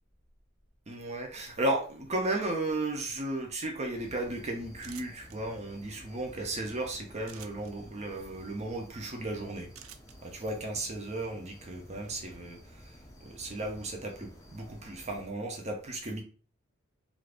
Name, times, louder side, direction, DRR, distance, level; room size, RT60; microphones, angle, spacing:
voice 1, 0.9-9.7 10.2-16.2, right 2 dB, 35° right, 0.7 m, -35 dB
sound 1, 3.9-15.3, equal, 15° left, 0.5 m, -53 dB
sound 2, 4.8-5.4 7.2-7.7 9.7-10.2, right 10 dB, 75° right, 0.3 m, -48 dB
2.6 x 2.5 x 3.3 m
head